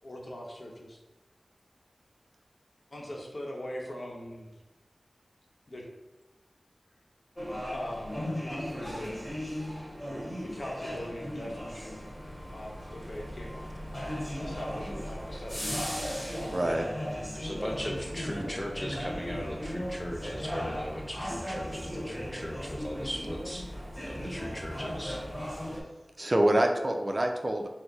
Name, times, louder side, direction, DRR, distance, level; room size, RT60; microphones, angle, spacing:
voice 1, 0.0-1.0 2.9-4.5 5.7-5.8 7.7-9.2 10.5-12.1 12.5-13.7 14.4-15.9, left 1 dB, 60° left, -1 dB, 0.8 m, -41 dB
sound 1, 7.4-25.8, equal, 25° left, 1.3 m, -37 dB
voice 2, 16.5-16.9 26.2-27.7, right 1 dB, 35° right, 4 dB, 0.4 m, -26 dB
voice 3, 17.3-23.7 24.1-25.2 25.5-25.8, equal, 10° left, 2 dB, 0.6 m, -38 dB
4.4 x 2.0 x 3.9 m, 1.1 s
wide cardioid pair, 55°, 0 cm